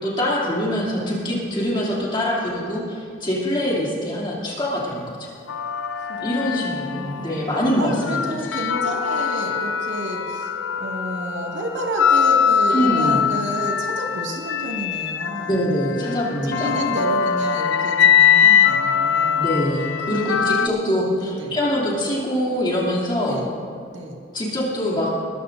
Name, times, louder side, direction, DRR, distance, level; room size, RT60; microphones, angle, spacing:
voice 1, 0.0-5.3 6.2-8.2 12.7-13.3 15.5-16.8 19.4-23.4 24.3-25.1, equal, 25° left, -5 dB, 2.9 m, -24 dB
sound 1, 5.5-7.4 7.9-20.7, left 7 dB, 80° left, 0.5 m, -22 dB
voice 2, 6.1-7.4 7.8-15.6 16.5-19.5 20.1-21.6 23.3-23.5 23.9-24.2, right 1 dB, 85° right, -1 dB, 2.1 m, -31 dB
20.5 x 14.0 x 2.7 m, 2.4 s
head